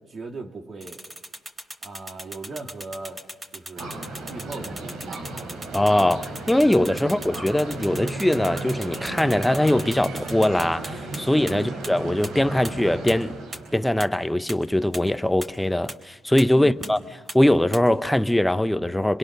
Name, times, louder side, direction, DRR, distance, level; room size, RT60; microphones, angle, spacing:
voice 1, 0.1-1.0 1.8-3.2 3.5-5.4 11.5-11.7 16.5-17.1, right 3 dB, 45° right, 2.6 m, -39 dB
sound 1, 0.8-11.2 11.5-11.6 11.8-11.9 12.2-12.3 12.6-12.7 13.1-13.2 13.5-13.6 14.0-14.1 14.5-14.6 14.9-15.0 15.4-15.5 15.9-16.0 16.4-16.5 16.8-16.9 17.3-17.4 17.7-17.8, right 1 dB, 30° right, 3.9 m, -37 dB
sound 2, 3.8-13.8, right 2 dB, 80° right, 4.1 m, -34 dB
voice 2, 5.7-13.3 13.7-17.0 17.3-19.2, left 1 dB, 5° left, 0.8 m, -21 dB
26.0 x 22.0 x 6.7 m
cardioid pair, 90°, 0 cm